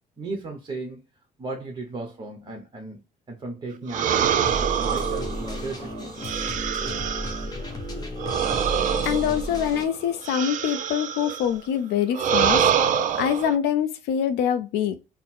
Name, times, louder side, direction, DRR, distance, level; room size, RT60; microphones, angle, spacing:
voice 1, 0.2-1.0 1.4-3.0 3.3-6.2, right 3 dB, 25° right, 1.0 m, -35 dB
sound 1, 3.9-7.6 8.2-11.5 12.1-13.6, right 8 dB, 50° right, 0.5 m, -25 dB
sound 2, 4.1-9.9, equal, 25° left, 0.9 m, -33 dB
voice 2, 9.0-14.9, left 9 dB, 85° left, 0.5 m, -25 dB
3.9 x 2.0 x 4.3 m
cardioid pair, 110°, 17 cm